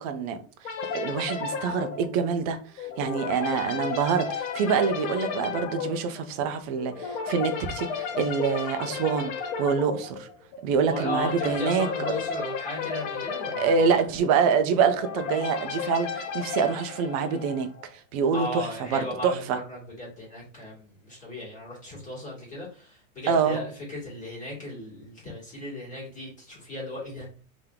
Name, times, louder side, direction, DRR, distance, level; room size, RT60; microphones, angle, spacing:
voice 1, 0.0-9.3 9.6-10.3 10.6-11.9 13.6-17.7 18.1-19.6 23.3-23.6, right 6 dB, 30° right, 0.4 m, -26 dB
sound 1, 0.6-17.8, left 5 dB, 55° left, 1.0 m, -33 dB
voice 2, 10.9-14.0 18.3-27.3, left 1 dB, 20° left, 2.1 m, -36 dB
3.6 x 2.9 x 3.5 m
supercardioid pair, 150°, 41 cm